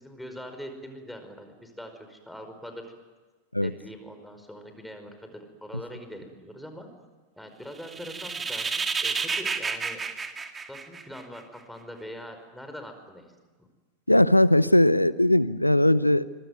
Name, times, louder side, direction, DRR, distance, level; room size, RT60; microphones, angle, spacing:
voice 1, 0.0-2.9 3.6-6.9 7.4-10.0 10.7-13.3 13.6-13.7, equal, ahead, 6 dB, 5.2 m, -42 dB
sound 1, 7.8-11.4, right 5 dB, 15° right, 2.2 m, -30 dB
voice 2, 14.1-16.2, left 1 dB, 85° left, 18 dB, 0.8 m, -19 dB
25.5 x 23.5 x 9.3 m, 1.3 s
figure-of-eight pair, 90°, 0 cm